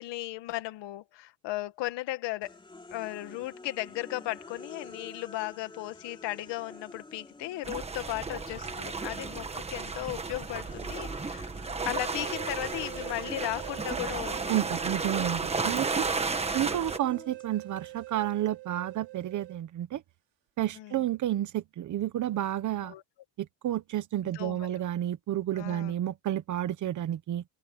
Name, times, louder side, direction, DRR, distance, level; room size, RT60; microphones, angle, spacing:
voice 1, 0.0-2.6 2.9-11.5 11.8-14.5 20.8-20.9 22.8-23.0 24.3-24.8 25.5-25.9, left 17 dB, 65° left, 1.9 m, -36 dB
sound 1, 2.4-9.5 9.8-18.4, left 3 dB, 10° left, 3.9 m, -49 dB
sound 2, 7.6-17.0, right 4 dB, 15° right, 1.3 m, -33 dB
sound 3, 12.0-19.6, right 20 dB, 70° right, 3.4 m, -44 dB
voice 2, 14.5-16.1 16.5-20.0 20.6-22.9 23.4-27.4, right 12 dB, 40° right, 1.1 m, -31 dB
open air
cardioid pair, 170°, 46 cm